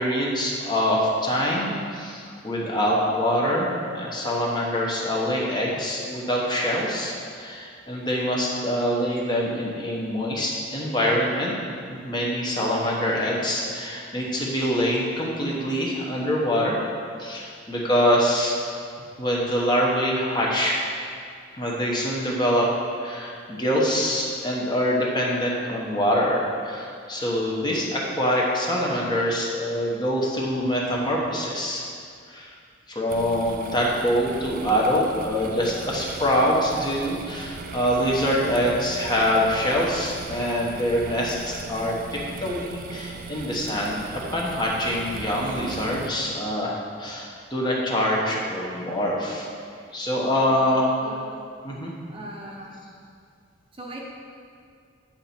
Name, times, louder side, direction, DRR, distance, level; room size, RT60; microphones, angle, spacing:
voice 1, 0.0-11.5 11.9-16.8 17.2-18.6 19.2-20.8 21.5-22.7 23.0-31.9 32.3-32.5 32.9-49.5 49.9-50.9 51.6-51.9, equal, 20° left, -3 dB, 1.0 m, -25 dB
sound 1, 33.1-46.1, right 4 dB, 45° right, 0.4 m, -38 dB
voice 2, 50.4-51.3 52.1-52.8 53.7-54.0, right 1 dB, 25° right, -2 dB, 0.8 m, -40 dB
8.7 x 5.2 x 4.3 m, 2.2 s
head